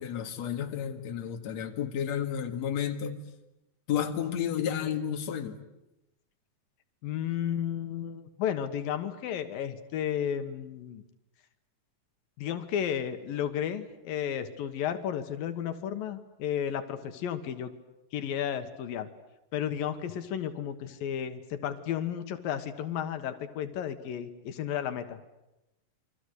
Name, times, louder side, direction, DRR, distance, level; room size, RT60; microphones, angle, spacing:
voice 1, 0.0-3.2 3.9-5.6, left 9 dB, 55° left, 3.0 m, -31 dB
voice 2, 7.0-11.0 12.4-17.7 18.1-19.1 19.5-25.2, left 9 dB, 85° left, 3.2 m, -33 dB
28.5 x 24.5 x 8.2 m
omnidirectional pair, 3.9 m